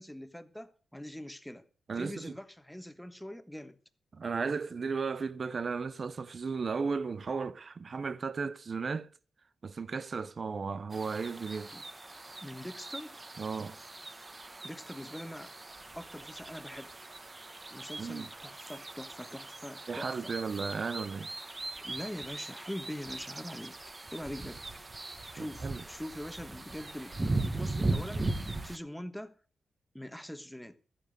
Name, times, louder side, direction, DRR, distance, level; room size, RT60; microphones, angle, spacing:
voice 1, 0.0-1.6 2.0-3.8 11.7-11.8 12.4-13.2 14.6-15.5 15.9-16.9 17.7-20.3 21.8-23.8 24.1-24.6 25.3-29.4 29.9-30.8, left 1 dB, 5° left, 1.3 m, -43 dB
voice 2, 1.9-2.3 4.1-9.1 9.6-11.8 13.4-13.8 18.0-18.3 19.9-21.3 25.3-25.8, right 5 dB, 50° right, 0.8 m, -35 dB
sound 1, 10.9-28.8, right 2 dB, 25° right, 1.4 m, -39 dB
13.5 x 8.6 x 6.5 m
cardioid pair, 90°, 0 cm